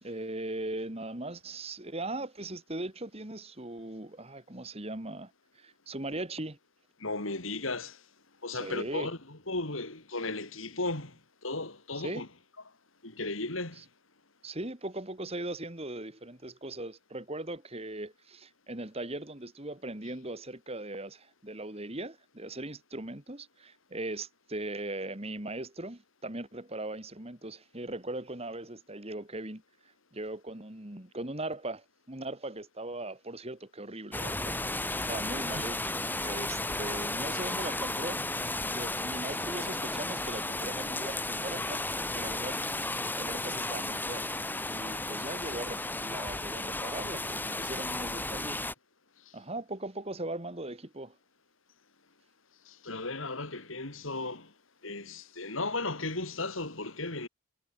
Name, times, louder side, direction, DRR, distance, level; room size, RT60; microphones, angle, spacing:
voice 1, 0.0-5.3 5.6-6.6 8.5-9.1 12.0-12.2 14.4-29.6 30.1-38.2 38.6-42.9 43.2-44.3 44.6-48.6 49.3-51.2, right 2 dB, 30° right, 2.4 m, -39 dB
voice 2, 7.0-8.0 8.4-11.1 11.4-12.3 13.0-13.8 35.5-35.7 52.7-54.5 54.8-57.3, left 2 dB, 75° left, 4.2 m, -35 dB
sound 1, 34.1-48.7, left 2 dB, 10° left, 5.3 m, -34 dB
head